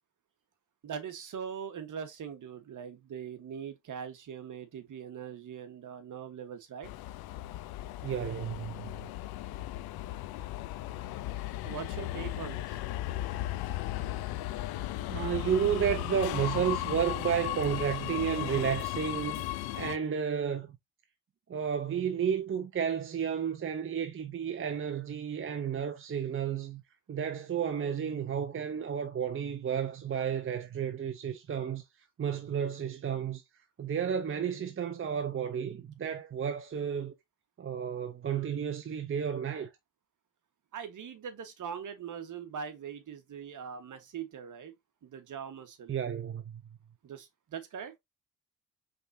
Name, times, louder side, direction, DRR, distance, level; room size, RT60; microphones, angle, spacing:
voice 1, 0.8-6.9 11.6-12.8 40.7-44.7 45.0-45.9 47.0-47.9, right 7 dB, 55° right, 1.4 m, -41 dB
Subway metro underground, 6.8-20.0, left 15 dB, 75° left, 0.6 m, -36 dB
voice 2, 8.0-9.1 15.0-19.5 19.7-20.7 21.5-26.8 27.1-31.8 32.2-33.4 33.8-37.2 37.6-39.7 45.9-46.6, right 8 dB, 35° right, 0.8 m, -32 dB
5.3 x 3.7 x 2.7 m
supercardioid pair, 55°, 37 cm